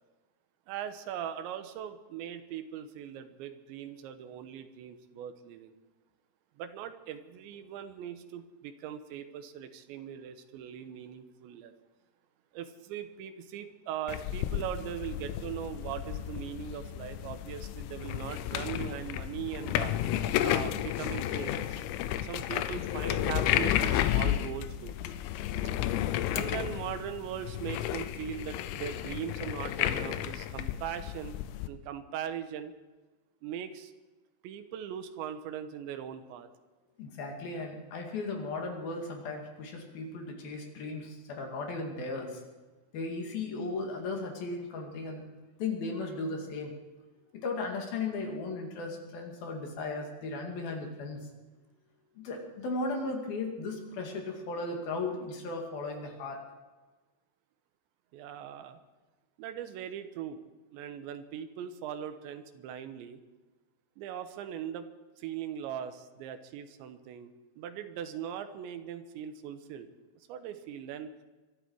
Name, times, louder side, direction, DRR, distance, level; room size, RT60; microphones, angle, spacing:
voice 1, 0.7-5.7 6.6-11.7 12.5-19.9 20.4-21.8 22.2-25.0 26.3-31.4 31.7-32.7 33.4-33.9 34.4-36.5 58.1-58.8 59.4-60.4 60.7-63.2 64.0-64.9 65.2-67.3 67.6-69.9 70.3-71.1, right 9 dB, 75° right, 9 dB, 3.1 m, -40 dB
sound 1, 14.1-31.7, left 12 dB, 90° left, 3.5 m, -32 dB
voice 2, 37.0-42.4 42.9-45.2 45.6-46.8 47.3-51.2 52.2-56.4, left 3 dB, 55° left, 2 dB, 3.6 m, -36 dB
23.5 x 13.0 x 4.7 m, 1.2 s
omnidirectional pair, 5.8 m